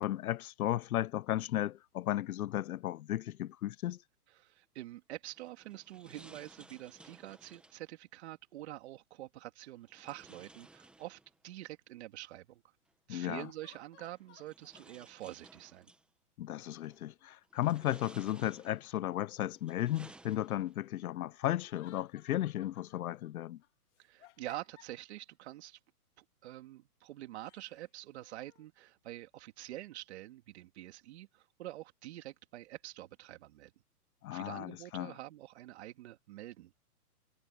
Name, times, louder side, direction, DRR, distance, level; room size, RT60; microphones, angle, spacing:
voice 1, 0.0-4.0 13.1-13.5 16.4-23.6 34.2-35.1, left 13 dB, 70° left, 0.6 m, -35 dB
voice 2, 4.4-12.6 13.1-15.9 24.0-25.8 26.2-33.7 34.3-36.8, right 15 dB, 45° right, 2.6 m, -47 dB
sound 1, 5.3-7.9 9.9-11.5 12.9-13.0 14.0-16.1 16.7-17.1 17.5-19.0 19.5-20.9, right 2 dB, ahead, 1.0 m, -58 dB
sound 2, 10.2-10.3 13.3-14.9 21.6-23.3 23.6-25.2 27.4-28.7, left 14 dB, 50° left, 2.7 m, -62 dB
hypercardioid pair, 160°, 46 cm